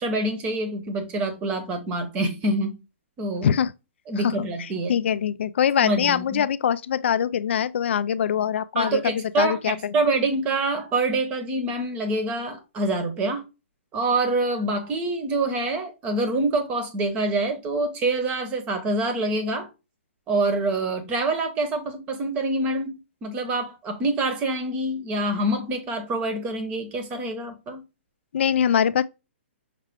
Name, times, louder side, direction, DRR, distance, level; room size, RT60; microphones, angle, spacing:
voice 1, 0.0-2.8 3.2-3.5 4.1-4.9 5.8-6.4 8.7-13.4 13.9-19.7 20.3-27.8, right 2 dB, 20° right, 0.8 m, -26 dB
voice 2, 4.2-9.9 28.3-29.0, left 8 dB, 65° left, 0.4 m, -23 dB
5.7 x 2.3 x 3.5 m
hypercardioid pair, 155°, 7 cm